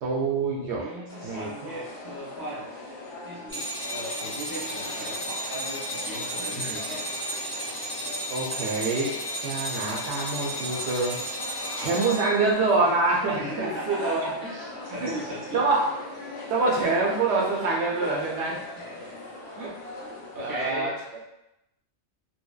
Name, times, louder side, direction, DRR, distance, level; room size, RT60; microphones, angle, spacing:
voice 1, 0.0-0.9 1.2-1.8 6.5-6.8 8.3-9.2 9.4-11.2 11.7-14.3 15.0-15.1 15.5-15.8 16.5-18.6 19.6-19.7 20.4-20.9, right 3 dB, 75° right, -3 dB, 0.8 m, -26 dB
voice 2, 0.7-2.6 3.2-7.0 13.3-15.6 18.0-18.1 20.3-20.9, right 1 dB, 25° right, -6 dB, 0.5 m, -37 dB
sound 1, 1.1-20.7, left 2 dB, 65° left, 0.7 m, -40 dB
sound 2, 3.5-12.5, equal, 10° left, 0.9 m, -33 dB
2.7 x 2.0 x 2.2 m, 0.88 s
omnidirectional pair, 1.2 m